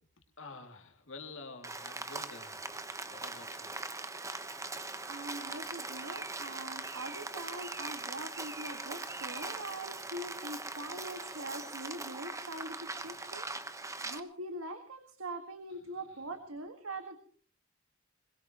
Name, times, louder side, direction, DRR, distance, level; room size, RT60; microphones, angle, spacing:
voice 1, 0.4-3.8 15.7-16.2, left 3 dB, 65° left, 4 dB, 2.7 m, -50 dB
Rain, 1.6-14.2, right 3 dB, 15° right, 1.1 m, -41 dB
voice 2, 5.1-17.2, right 1 dB, 90° right, 6 dB, 1.8 m, -43 dB
22.5 x 21.5 x 3.0 m, 0.43 s
head